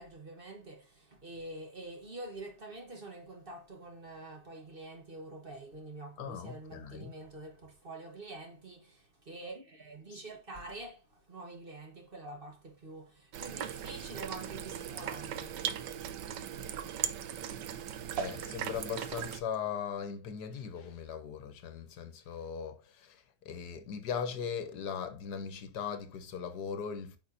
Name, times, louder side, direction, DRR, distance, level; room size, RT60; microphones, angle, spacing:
voice 1, 0.0-15.6, right 2 dB, 35° right, 1.4 m, -46 dB
voice 2, 6.2-7.1 10.1-10.2 18.2-27.2, left 7 dB, 75° left, 1.5 m, -39 dB
sound 1, 13.3-19.4, right 10 dB, 90° right, 1.4 m, -38 dB
9.2 x 5.8 x 2.6 m
omnidirectional pair, 1.8 m